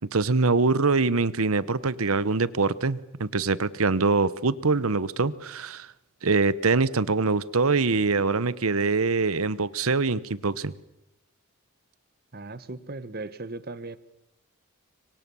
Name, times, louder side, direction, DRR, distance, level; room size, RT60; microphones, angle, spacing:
voice 1, 0.1-5.9 6.2-10.7, right 4 dB, 85° right, 1.0 m, -24 dB
voice 2, 12.3-14.0, right 2 dB, 45° right, 1.1 m, -37 dB
26.0 x 24.0 x 7.0 m
head